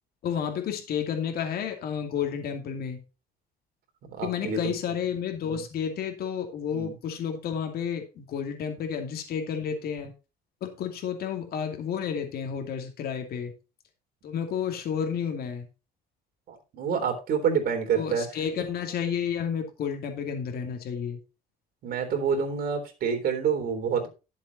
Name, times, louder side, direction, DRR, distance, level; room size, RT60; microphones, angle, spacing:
voice 1, 0.2-3.0 4.2-10.1 10.6-13.5 14.2-15.7 17.9-21.2, left 7 dB, 65° left, 4 dB, 2.5 m, -31 dB
voice 2, 4.1-4.6 5.4-5.6 6.7-6.9 16.5-18.3 21.8-24.1, right 6 dB, 65° right, 5 dB, 3.6 m, -27 dB
11.5 x 7.5 x 4.1 m, 0.30 s
cardioid pair, 110°, 17 cm